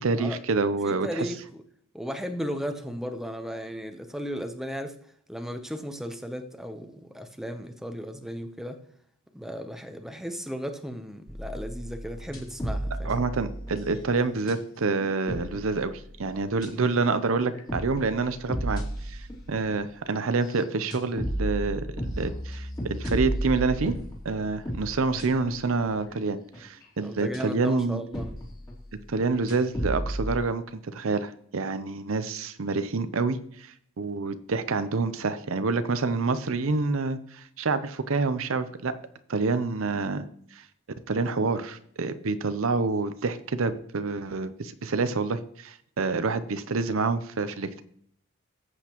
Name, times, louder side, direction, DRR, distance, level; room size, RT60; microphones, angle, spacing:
voice 1, 0.0-1.3 13.0-24.0 24.2-28.0 29.1-38.9 39.3-40.2 40.5-40.6 41.1-47.8, right 4 dB, 65° right, 0.6 m, -27 dB
voice 2, 0.8-1.6 1.9-5.0 5.3-8.8 9.3-13.2 16.7-17.0 27.0-28.3, equal, ahead, 0.7 m, -35 dB
sound 1, 11.3-14.6 15.0-27.4 27.9-30.4, right 1 dB, 20° left, 2.4 m, -35 dB
13.5 x 8.1 x 3.0 m
head